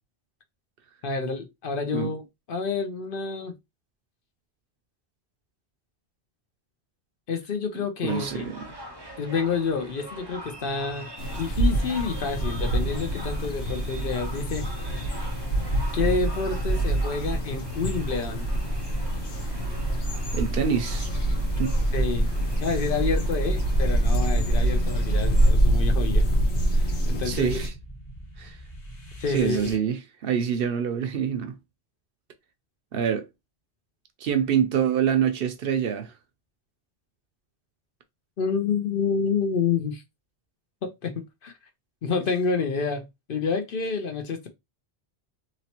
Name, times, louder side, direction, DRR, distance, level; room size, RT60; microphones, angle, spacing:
voice 1, 1.0-2.2 2.5-3.5 7.3-8.5 9.2-11.1 11.4-14.9 15.9-18.5 21.9-22.3 22.6-26.2 26.7-27.6 29.2-29.7 38.4-40.0 40.8-41.5 42.0-44.5, left 5 dB, 60° left, 0.8 m, -28 dB
voice 2, 8.0-8.7 20.3-21.1 21.6-21.7 27.1-27.7 28.4-28.6 29.3-31.5 32.9-33.2 34.2-36.1, right 8 dB, 65° right, 0.7 m, -26 dB
sound 1, 8.1-25.5, right 1 dB, 30° right, 0.6 m, -43 dB
sound 2, 11.2-27.7, right 1 dB, 85° left, 1.3 m, -25 dB
sound 3, 20.0-29.8, right 1 dB, 40° left, 1.3 m, -44 dB
3.0 x 3.0 x 2.8 m
omnidirectional pair, 1.1 m